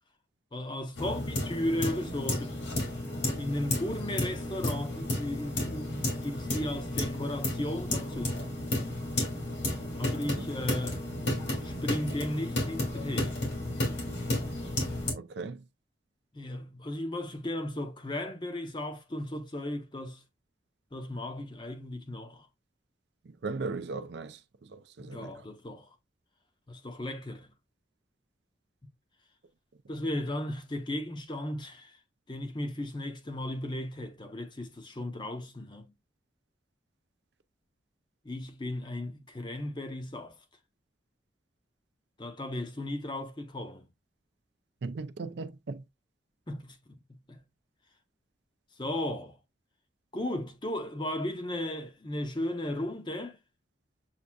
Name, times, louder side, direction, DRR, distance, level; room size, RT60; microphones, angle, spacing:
voice 1, 0.5-2.5 3.4-8.4 10.0-11.0 11.6-13.4 16.3-20.2 20.9-22.5 25.0-25.9 26.7-27.5 29.9-32.0 32.3-35.9 38.2-40.3 42.2-43.9 46.5-46.8 47.1-47.4 48.8-49.4 50.1-53.4, left 1 dB, 25° left, 0.6 m, -35 dB
sound 1, 1.0-15.1, left 1 dB, 80° left, 2.0 m, -32 dB
voice 2, 15.1-15.6 23.4-25.3 44.8-45.8, right 3 dB, 65° right, 0.4 m, -37 dB
7.2 x 2.6 x 2.2 m
head